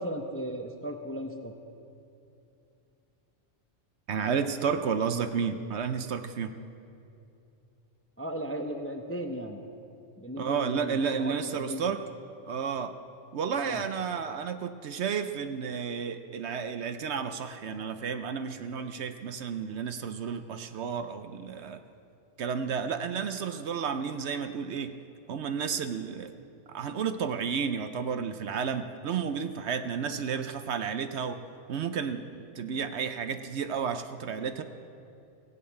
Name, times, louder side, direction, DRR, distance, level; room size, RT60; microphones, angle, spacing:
voice 1, 0.0-1.5 8.2-9.6 10.2-12.0 13.6-13.9, equal, 15° left, 4 dB, 0.6 m, -36 dB
voice 2, 4.1-6.5 10.4-12.0 12.5-12.9 13.3-21.8 22.4-24.9 25.3-26.3 26.7-31.4 31.7-34.6, right 6 dB, 65° right, 9 dB, 0.9 m, -32 dB
16.5 x 7.6 x 8.6 m, 2.7 s
omnidirectional pair, 1.3 m